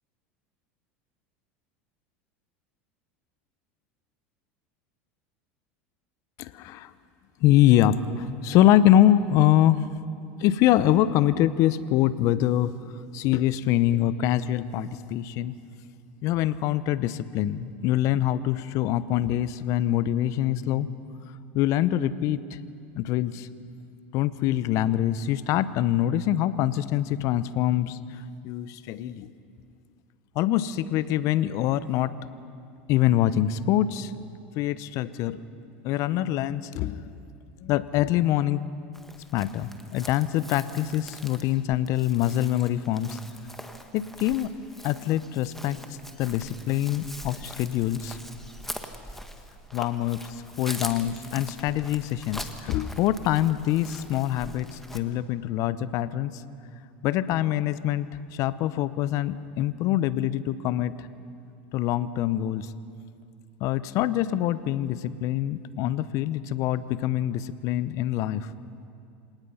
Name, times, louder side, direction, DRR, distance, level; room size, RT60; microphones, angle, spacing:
voice 1, 6.4-6.9 7.4-9.9 10.4-12.7 13.1-15.5 16.2-20.9 21.5-22.6 22.9-23.5 24.1-28.0 28.4-29.3 30.3-32.1 32.9-34.1 34.6-35.4 35.8-37.1 37.6-38.6 39.3-43.2 43.9-44.5 44.8-45.8 46.2-48.2 49.7-56.4 57.0-60.9 61.7-62.7 63.6-68.5, left 12 dB, 55° left, 16 dB, 0.8 m, -24 dB
Chirp tweet, 38.9-55.0, left 1 dB, 5° left, 1.7 m, -43 dB
27.5 x 18.0 x 5.7 m, 2.4 s
hypercardioid pair, 95°, 6 cm